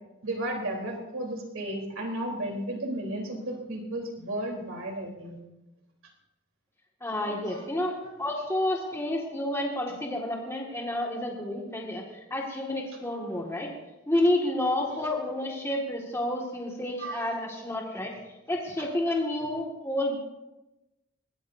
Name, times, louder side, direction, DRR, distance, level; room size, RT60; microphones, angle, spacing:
voice 1, 0.2-5.4 7.2-7.6 8.0-8.1 15.0-15.1 17.0-17.2, right 1 dB, 90° right, 0 dB, 3.7 m, -34 dB
voice 2, 7.0-13.7 14.1-18.1 18.5-20.2, left 1 dB, 15° left, -1 dB, 1.9 m, -30 dB
21.5 x 17.5 x 2.7 m, 0.99 s
head